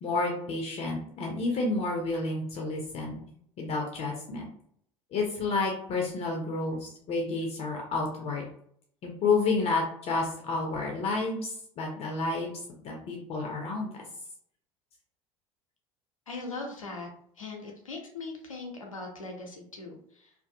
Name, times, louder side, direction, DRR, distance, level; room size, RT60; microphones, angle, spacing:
voice 1, 0.0-3.2 3.6-4.5 5.1-8.4 9.0-12.5 12.8-13.9, left 3 dB, 35° left, 1 dB, 0.6 m, -30 dB
voice 2, 16.3-17.1 17.4-20.3, left 3 dB, 80° left, 1 dB, 0.6 m, -40 dB
2.6 x 2.3 x 2.6 m, 0.65 s
figure-of-eight pair, 70°, 17 cm